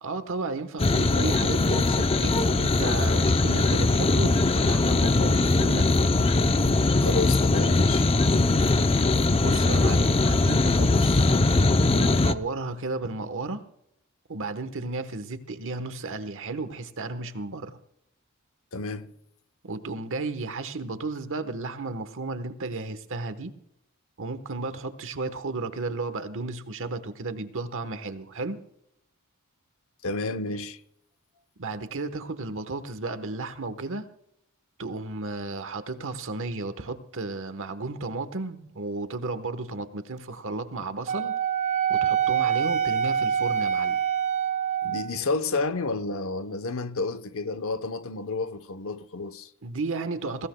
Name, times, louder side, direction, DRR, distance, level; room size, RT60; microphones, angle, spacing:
voice 1, 0.0-5.9 9.4-11.3 11.9-13.6 14.3-17.8 19.6-23.5 24.2-28.6 31.6-34.1 34.8-41.3 41.9-44.0 49.6-50.5, right 3 dB, 60° right, 1.2 m, -33 dB
sound 1, 0.8-12.3, left 2 dB, 25° left, 0.6 m, -21 dB
voice 2, 7.0-8.1 18.7-19.1 30.0-30.8 44.8-49.5, left 3 dB, 65° left, 0.9 m, -30 dB
Wind instrument woodwind instrument, 41.1-45.2, right 8 dB, 30° right, 0.5 m, -25 dB
22.0 x 17.0 x 2.3 m
head